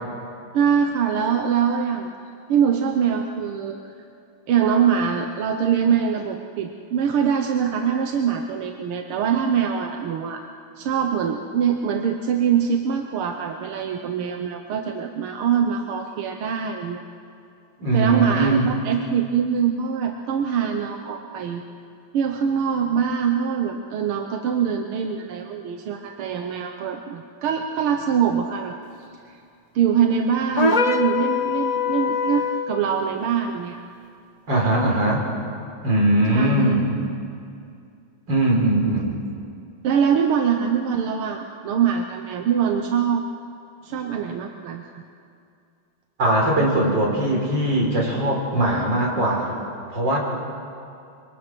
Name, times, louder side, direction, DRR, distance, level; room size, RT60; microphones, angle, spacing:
voice 1, 0.5-2.1 2.5-3.9 4.5-10.4 10.8-17.0 17.9-21.6 22.1-28.8 29.8-33.8 36.3-36.8 39.8-43.2 43.8-45.0, right 7 dB, 90° right, 4 dB, 1.9 m, -23 dB
voice 2, 17.8-18.7 34.5-35.2 35.8-36.9 38.3-39.2 46.2-49.6 49.9-50.2, right 1 dB, 55° right, -1 dB, 5.1 m, -20 dB
sound 1, 30.6-32.8, left 5 dB, 30° left, 0.7 m, -22 dB
26.0 x 24.0 x 6.2 m, 2.4 s
omnidirectional pair, 2.3 m